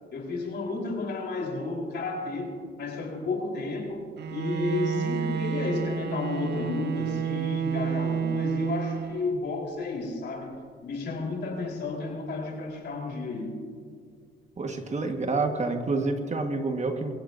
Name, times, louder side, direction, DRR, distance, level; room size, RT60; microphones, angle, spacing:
voice 1, 0.1-10.6 10.8-13.6, left 3 dB, 60° left, 0 dB, 4.1 m, -32 dB
Bowed string instrument, 4.2-9.5, right 7 dB, 55° right, 0.7 m, -30 dB
voice 2, 14.6-17.1, right 3 dB, 35° right, 5 dB, 1.5 m, -28 dB
25.5 x 16.0 x 2.7 m, 2.1 s
cardioid pair, 90°, 20 cm